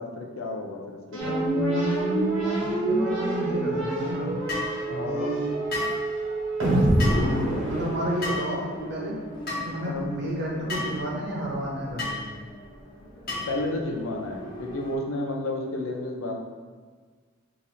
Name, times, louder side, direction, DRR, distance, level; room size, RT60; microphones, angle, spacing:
voice 1, 0.0-1.4 4.9-5.3 9.8-10.1 13.5-16.4, left 2 dB, 80° left, 1 dB, 0.5 m, -32 dB
sound 1, 1.1-8.6, right 1 dB, 80° right, 1.2 m, -27 dB
sound 2, 1.2-15.0, right 3 dB, 20° left, 0.6 m, -35 dB
voice 2, 2.6-4.4 5.0-5.5 6.9-9.1 9.6-12.2, equal, 60° right, -2 dB, 0.8 m, -31 dB
sound 3, 4.5-4.7 5.7-6.0 7.0-7.2 8.2-8.5 9.5-9.6 10.7-10.9 12.0-12.2 13.3-13.6, left 2 dB, 50° left, 1.1 m, -30 dB
2.9 x 2.6 x 4.1 m, 1.5 s
head